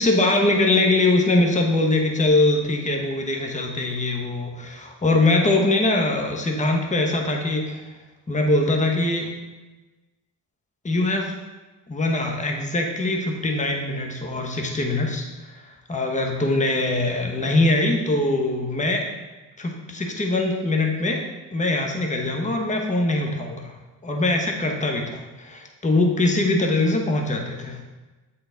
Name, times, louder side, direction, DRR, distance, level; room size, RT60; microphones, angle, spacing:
voice 1, 0.0-7.8 8.3-9.3 10.8-11.3 11.9-15.3 15.9-19.1 19.6-21.2 21.5-23.7 24.0-27.8, left 2 dB, 15° left, 2 dB, 1.0 m, -22 dB
8.0 x 3.8 x 3.9 m, 1.2 s
cardioid pair, 80°, 45 cm